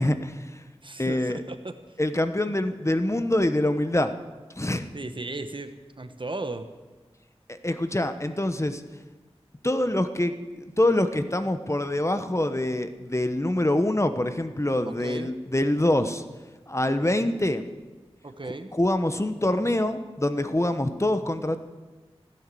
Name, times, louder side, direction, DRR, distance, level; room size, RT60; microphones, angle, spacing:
voice 1, 0.0-0.6 1.0-1.4 2.0-4.1 4.5-4.9 7.5-8.8 9.6-16.2 16.7-17.7 18.7-21.6, left 1 dB, 25° left, 9 dB, 1.1 m, -25 dB
voice 2, 0.8-2.0 4.9-6.7 14.8-15.3 18.2-18.7, right 2 dB, 50° right, 9 dB, 1.2 m, -36 dB
15.5 x 10.5 x 7.6 m, 1.2 s
wide cardioid pair, 45°, 11 cm